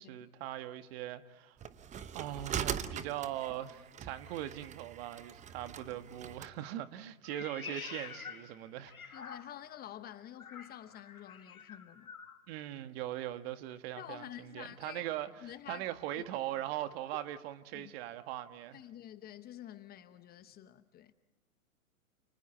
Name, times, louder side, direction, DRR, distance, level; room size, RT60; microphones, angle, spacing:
voice 1, 0.0-1.6 2.1-9.1 12.5-15.3 15.7-18.8, right 13 dB, 45° right, 1.7 m, -40 dB
sound 1, 1.6-6.5, right 8 dB, 15° right, 1.0 m, -41 dB
Meow, 7.2-9.8 10.4-12.4, left 6 dB, 85° left, 2.0 m, -48 dB
voice 2, 9.1-12.1 14.0-15.0 15.4-15.9 16.2-16.3 17.7-17.9 18.7-21.1, left 12 dB, 20° left, 1.0 m, -49 dB
29.5 x 29.5 x 4.5 m
hypercardioid pair, 115°, 42 cm